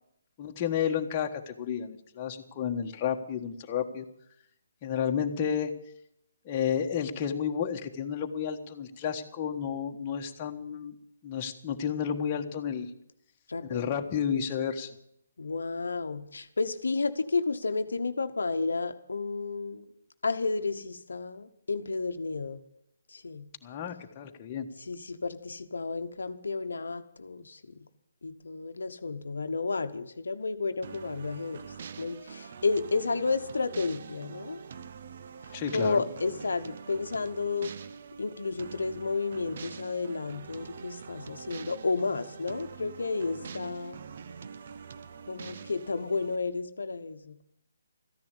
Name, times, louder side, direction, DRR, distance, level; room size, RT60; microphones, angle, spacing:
voice 1, 0.4-4.1 4.8-5.7 6.4-10.9 11.2-12.9 13.6-14.9 23.6-24.7 35.5-36.0, left 8 dB, 30° left, 3 dB, 1.4 m, -31 dB
voice 2, 13.5-13.8 15.4-19.9 20.2-22.6 23.1-23.5 24.8-27.6 28.2-31.6 32.0-34.6 35.5-37.7 38.2-44.0 45.3-47.4, left 4 dB, 75° left, 8 dB, 1.0 m, -32 dB
sound 1, 30.8-46.4, right 6 dB, 50° right, 0.8 m, -45 dB
14.0 x 10.5 x 8.5 m, 0.73 s
figure-of-eight pair, 145°, 0 cm